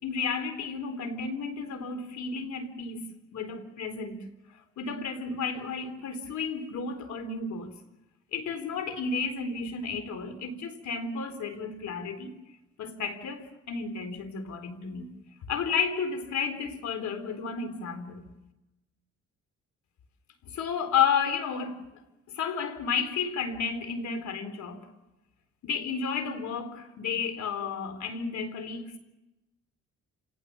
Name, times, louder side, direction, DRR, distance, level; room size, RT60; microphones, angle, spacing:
voice 1, 0.0-4.1 4.8-7.7 8.3-12.3 12.8-15.1 15.5-18.2 20.4-21.8 22.3-24.9 25.6-29.0, left 5 dB, 75° left, 4.0 m, -32 dB
30.0 x 18.0 x 6.9 m
cardioid pair, 100°, 29 cm